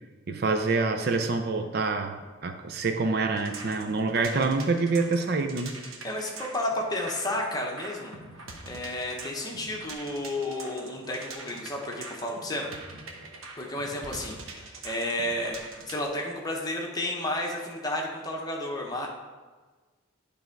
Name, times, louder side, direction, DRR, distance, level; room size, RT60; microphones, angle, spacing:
voice 1, 0.3-5.8, right 3 dB, 50° right, 5 dB, 0.5 m, -26 dB
sound 1, 3.4-16.1, right 3 dB, 85° right, 1.0 m, -44 dB
voice 2, 6.0-8.2 8.6-12.7 13.6-15.6 15.9-19.1, left 1 dB, 20° left, -1 dB, 1.0 m, -32 dB
10.5 x 3.5 x 4.5 m, 1.4 s
head